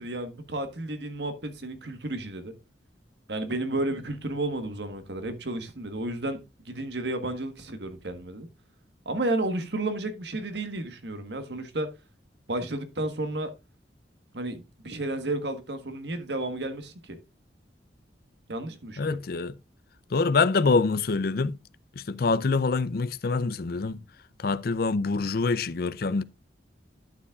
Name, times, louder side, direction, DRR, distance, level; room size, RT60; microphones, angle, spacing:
voice 1, 0.0-2.5 3.3-6.4 6.6-8.5 9.0-11.9 12.5-13.5 14.3-17.2 18.5-19.2, right 2 dB, 70° right, 1.4 m, -32 dB
voice 2, 19.0-19.5 20.1-21.5 22.0-24.0 24.4-26.2, left 4 dB, 55° left, 0.5 m, -25 dB
11.5 x 7.2 x 2.4 m
head